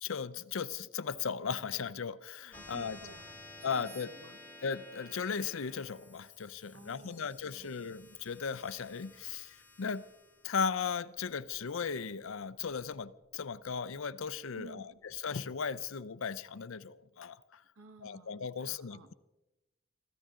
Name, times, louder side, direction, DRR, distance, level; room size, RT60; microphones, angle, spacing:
voice 1, 0.0-3.0 3.6-4.1 4.6-10.0 10.4-14.9 15.2-17.6 18.0-19.1, left 6 dB, 65° left, 0.5 m, -37 dB
sound 1, 2.5-13.4, left 2 dB, 5° left, 1.6 m, -54 dB
voice 2, 2.5-4.4 6.7-7.9 14.5-15.0 17.7-19.1, right 3 dB, 70° right, 1.2 m, -55 dB
25.0 x 14.5 x 3.8 m
head